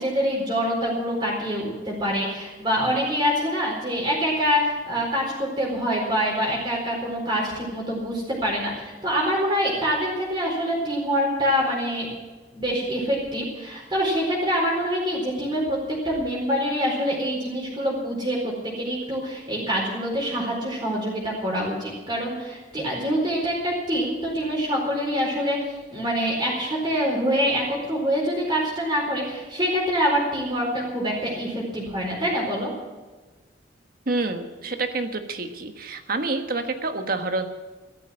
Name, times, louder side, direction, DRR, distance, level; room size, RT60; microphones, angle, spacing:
voice 1, 0.0-12.1 12.5-32.7, equal, 25° right, -4 dB, 4.4 m, -25 dB
voice 2, 34.1-37.5, right 3 dB, 55° right, 7 dB, 1.4 m, -28 dB
14.5 x 13.5 x 6.3 m, 1.3 s
head